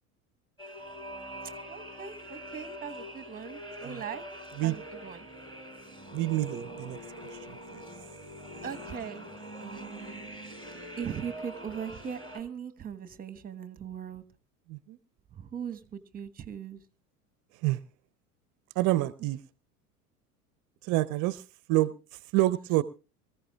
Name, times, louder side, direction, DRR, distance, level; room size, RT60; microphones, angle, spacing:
sound 1, 0.6-12.4, equal, 10° left, 3.7 m, -43 dB
voice 1, 1.7-4.3 4.6-5.3 8.6-9.3 9.6-10.3 11.0-14.2 15.3-16.8, right 8 dB, 20° right, 1.2 m, -40 dB
voice 2, 6.1-7.0 7.3-7.8 14.7-15.0 17.6-17.8 18.8-19.4 20.8-22.8, right 17 dB, 45° right, 0.7 m, -28 dB
24.5 x 15.0 x 2.3 m
hypercardioid pair, 85°, 45 cm